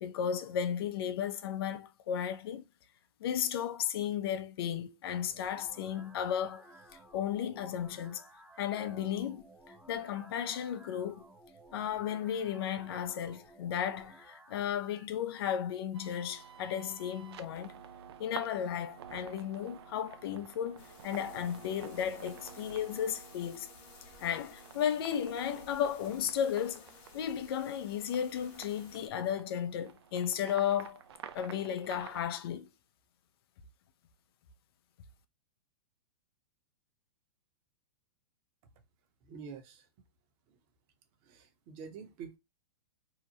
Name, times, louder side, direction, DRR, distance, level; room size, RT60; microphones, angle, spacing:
voice 1, 0.0-2.6 3.2-6.7 7.1-8.2 8.6-11.2 11.7-17.7 18.2-23.7 24.2-26.8 27.1-31.0 31.3-32.7, left 9 dB, 60° left, 0.5 m, -34 dB
sound 1, 5.0-15.0, right 1 dB, 5° right, 0.7 m, -57 dB
sound 2, 15.9-32.2, right 8 dB, 70° right, 0.5 m, -51 dB
sound 3, 20.8-29.1, left 5 dB, 40° left, 0.9 m, -56 dB
voice 2, 39.3-39.8 41.3-42.4, right 6 dB, 40° right, 0.9 m, -46 dB
2.8 x 2.1 x 2.8 m
hypercardioid pair, 120°, 14 cm